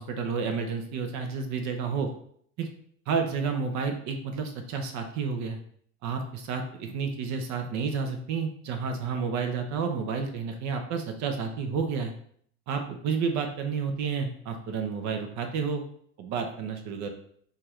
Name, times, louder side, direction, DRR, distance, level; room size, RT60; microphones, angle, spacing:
voice 1, 0.0-2.1 2.6-2.7 3.1-5.6 6.0-12.1 12.7-15.8 16.2-17.1, right 5 dB, 50° right, 5 dB, 0.7 m, -30 dB
4.5 x 2.4 x 3.2 m, 0.62 s
hypercardioid pair, 100°, 38 cm